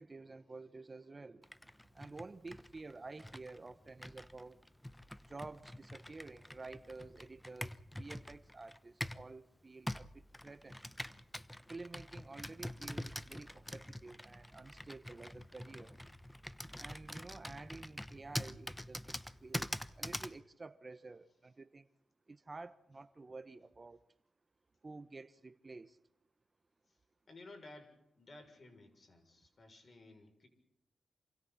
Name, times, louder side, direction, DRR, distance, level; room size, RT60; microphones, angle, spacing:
voice 1, 0.0-1.5 1.9-4.6 5.3-10.8 11.7-16.0 16.8-21.9 22.3-24.0 24.8-26.0, right 3 dB, 35° right, 1.2 m, -51 dB
Computer keyboard, 1.4-9.3 9.9-20.4, left 1 dB, 10° left, 1.1 m, -45 dB
voice 2, 27.3-30.5, left 2 dB, 50° left, 7.0 m, -56 dB
28.0 x 27.0 x 4.3 m
cardioid pair, 55°, 0 cm